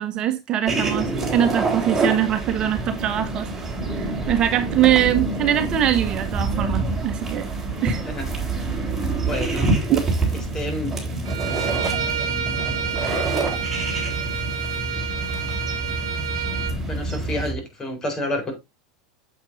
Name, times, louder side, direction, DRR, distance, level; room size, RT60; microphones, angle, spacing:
voice 1, 0.0-3.5 3.9-7.5 7.8-8.0 9.5-9.6 9.9-10.0, right 11 dB, 40° right, 1.2 m, -22 dB
sound 1, 0.7-17.5, right 3 dB, 15° right, 4.0 m, -26 dB
voice 2, 9.2-9.7 10.5-10.9 13.1-13.3 16.9-18.5, left 1 dB, 25° left, 4.0 m, -29 dB
Bowed string instrument, 11.2-16.7, right 8 dB, 75° right, 1.3 m, -29 dB
8.6 x 7.7 x 2.7 m
hypercardioid pair, 90°, 2 cm